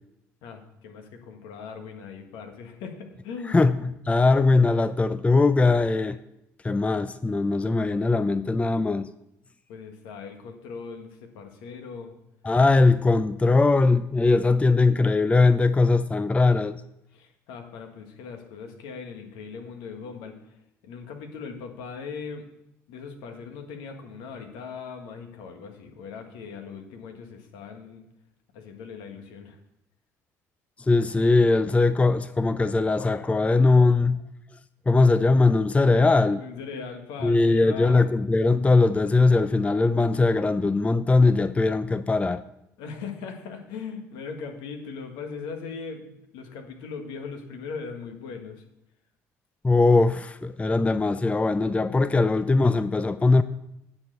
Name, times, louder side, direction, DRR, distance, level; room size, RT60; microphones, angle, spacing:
voice 1, 0.4-3.7 9.7-12.1 17.1-20.6 20.8-22.5 22.9-28.1 28.5-29.6 36.3-38.1 42.8-48.6, left 5 dB, 75° left, 1.5 m, -39 dB
voice 2, 3.5-6.2 6.6-9.1 12.4-16.8 30.9-34.2 34.9-36.4 37.2-42.4 49.6-53.4, left 3 dB, 15° left, 0.5 m, -20 dB
9.6 x 4.5 x 7.6 m
hypercardioid pair, 65°, 8 cm